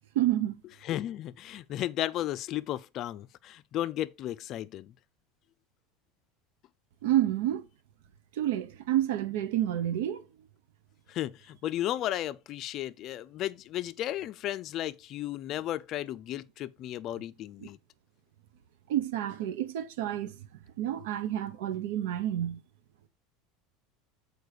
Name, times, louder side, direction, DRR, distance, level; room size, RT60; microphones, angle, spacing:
voice 1, 0.1-0.6 7.0-7.6 8.4-10.2 17.6-17.7 18.9-20.4 20.8-22.6, right 12 dB, 85° right, 0.9 m, -29 dB
voice 2, 0.8-4.9 11.1-17.8, left 13 dB, 45° left, 0.4 m, -34 dB
6.6 x 4.5 x 4.9 m
supercardioid pair, 130°, 0 cm